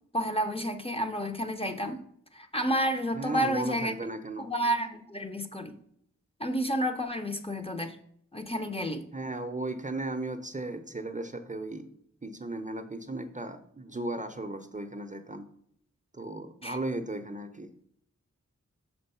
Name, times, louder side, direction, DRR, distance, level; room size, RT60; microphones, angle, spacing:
voice 1, 0.1-2.0 2.3-3.9 4.4-5.8 6.4-8.0 8.3-9.0 16.6-16.8, equal, 20° left, 5 dB, 0.6 m, -30 dB
voice 2, 3.2-4.5 9.1-11.9 12.2-15.5 16.1-17.7, right 2 dB, 25° right, 8 dB, 0.5 m, -36 dB
6.2 x 4.4 x 5.4 m, 0.68 s
wide cardioid pair, 70°, 30 cm